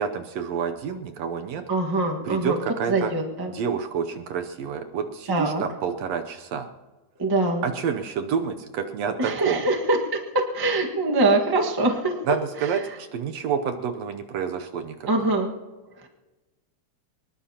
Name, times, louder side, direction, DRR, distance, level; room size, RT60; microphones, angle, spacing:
voice 1, 0.0-1.6 2.2-3.1 3.5-6.7 7.6-9.6 12.2-15.1, right 7 dB, 70° right, 6 dB, 1.7 m, -28 dB
voice 2, 1.7-2.6 2.9-3.5 5.3-5.6 7.2-7.6 9.2-10.2 10.5-12.3 15.1-15.5, right 2 dB, 35° right, 1 dB, 0.3 m, -23 dB
24.0 x 20.0 x 2.9 m, 1.2 s
omnidirectional pair, 3.5 m